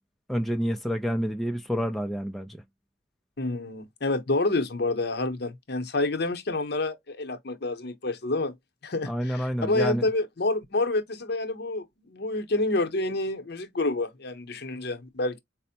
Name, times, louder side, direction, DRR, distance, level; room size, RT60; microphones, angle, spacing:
voice 1, 0.3-2.6 9.0-10.0, equal, ahead, 0.3 m, -28 dB
voice 2, 3.4-8.5 8.8-15.4, left 2 dB, 55° left, 0.7 m, -28 dB
4.3 x 2.0 x 2.7 m
head